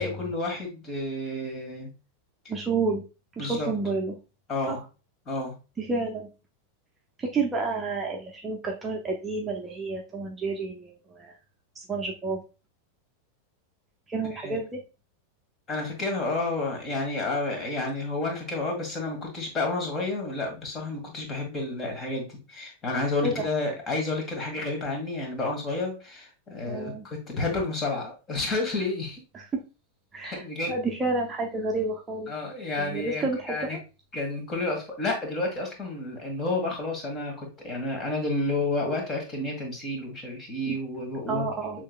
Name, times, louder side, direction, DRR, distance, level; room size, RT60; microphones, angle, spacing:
voice 1, 0.0-1.9 3.4-3.7 4.5-4.8 5.3-5.5 14.3-14.6 15.7-29.2 30.2-30.8 32.3-33.8 34.1-41.5 41.7-41.8, left 2 dB, 25° left, 1 dB, 1.8 m, -30 dB
voice 2, 2.5-3.0 3.4-4.1 4.7-4.8 5.8-6.3 7.2-11.3 11.8-12.4 14.1-14.8 23.2-23.4 26.7-27.1 29.3-29.6 30.1-32.3 32.8-33.8 40.7-40.8 41.3-41.8, right 3 dB, 20° right, 0 dB, 0.7 m, -30 dB
6.4 x 3.2 x 2.3 m, 0.31 s
figure-of-eight pair, 90°, 0 cm